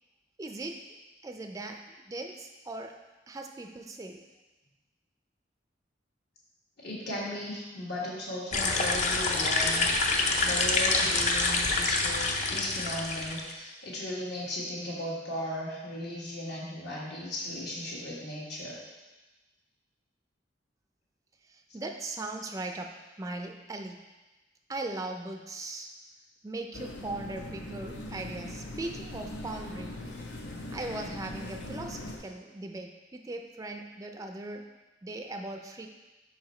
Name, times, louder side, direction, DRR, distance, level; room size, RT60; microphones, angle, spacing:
voice 1, 0.4-0.8 1.2-3.0 3.3-4.2 21.7-24.0 24.7-25.9 26.4-30.0 30.7-34.7 35.0-35.9, right 2 dB, 20° right, 3 dB, 0.4 m, -39 dB
voice 2, 6.8-10.2 10.4-18.8 21.7-21.8, left 1 dB, 65° left, -6 dB, 1.6 m, -37 dB
sound 1, 8.5-13.5, left 3 dB, 40° left, 0.6 m, -27 dB
sound 2, 26.7-32.2, left 1 dB, 85° left, 0.8 m, -40 dB
5.3 x 4.8 x 4.2 m, 1.1 s
head